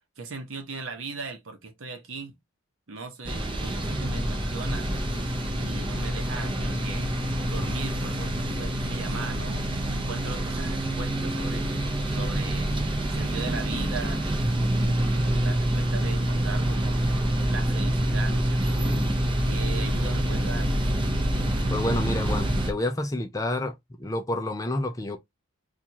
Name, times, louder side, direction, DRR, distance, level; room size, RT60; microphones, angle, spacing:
voice 1, 0.2-2.3 2.9-4.9 5.6-7.1 7.4-11.7 12.1-12.7 13.1-14.2 14.7-17.2 17.5-18.9 19.5-20.8, right 4 dB, 65° right, 0.8 m, -38 dB
sound 1, 3.3-22.7, right 1 dB, 20° right, 0.6 m, -26 dB
voice 2, 21.7-25.2, left 1 dB, 15° left, 0.4 m, -29 dB
4.4 x 2.4 x 2.8 m
head